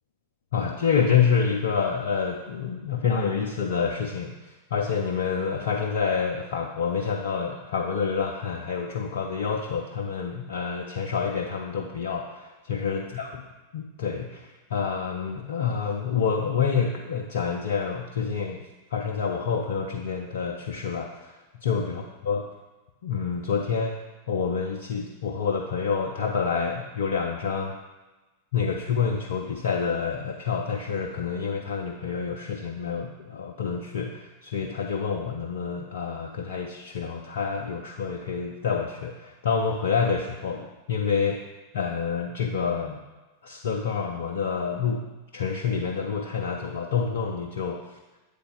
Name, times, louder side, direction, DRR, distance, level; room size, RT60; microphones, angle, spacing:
voice 1, 0.5-13.3 13.7-18.6 18.9-22.5 23.0-24.0 24.3-27.7 28.5-41.4 41.7-43.0 43.4-45.1 45.3-48.0, left 6 dB, 60° left, 0 dB, 0.5 m, -28 dB
7.9 x 3.7 x 3.6 m, 1.1 s
figure-of-eight pair, 90°, 0 cm